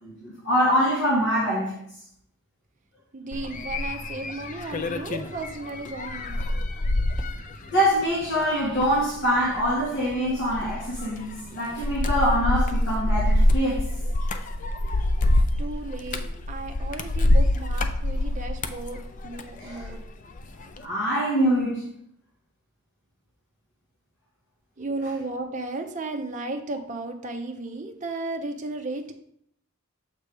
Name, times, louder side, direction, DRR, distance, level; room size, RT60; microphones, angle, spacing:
voice 1, 0.0-1.8 7.7-13.8 19.6-19.9 20.8-21.9, equal, 55° left, 1.4 m, -24 dB
voice 2, 3.1-6.4 14.8-14.9 15.6-16.2 16.5-20.0 24.8-29.1, right 2 dB, 35° right, 0.6 m, -34 dB
sound 1, 3.3-20.0 20.4-20.8, left 1 dB, 35° left, 0.4 m, -26 dB
6.7 x 3.2 x 4.8 m
head